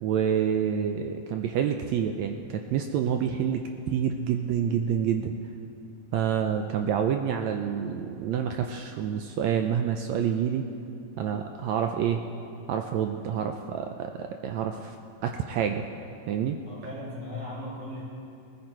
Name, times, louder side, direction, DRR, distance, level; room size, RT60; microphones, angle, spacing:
voice 1, 0.0-5.4 6.1-10.6 11.2-12.2 12.7-15.0 15.2-15.8 16.3-16.6, right 8 dB, 80° right, 5 dB, 1.6 m, -28 dB
voice 2, 16.6-18.0, left 1 dB, 20° right, -6 dB, 4.9 m, -37 dB
19.0 x 15.0 x 4.5 m, 2.7 s
omnidirectional pair, 3.8 m